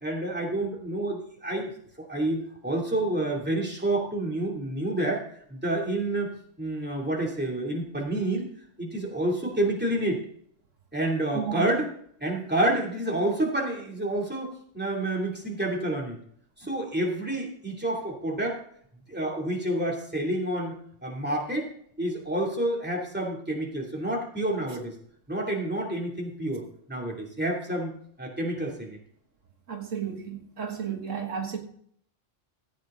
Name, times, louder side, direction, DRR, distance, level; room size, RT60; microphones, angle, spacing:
voice 1, 0.0-1.7 2.0-5.2 5.5-6.3 6.6-8.5 8.8-10.2 10.9-11.9 12.2-16.2 16.6-18.6 19.1-20.8 21.0-21.7 22.0-24.9 25.3-26.6 26.9-27.9 28.2-29.0, right 1 dB, 10° right, 2.7 m, -28 dB
voice 2, 11.3-11.7 29.7-31.6, right 7 dB, 85° right, 1.9 m, -33 dB
15.0 x 8.5 x 3.8 m
omnidirectional pair, 1.3 m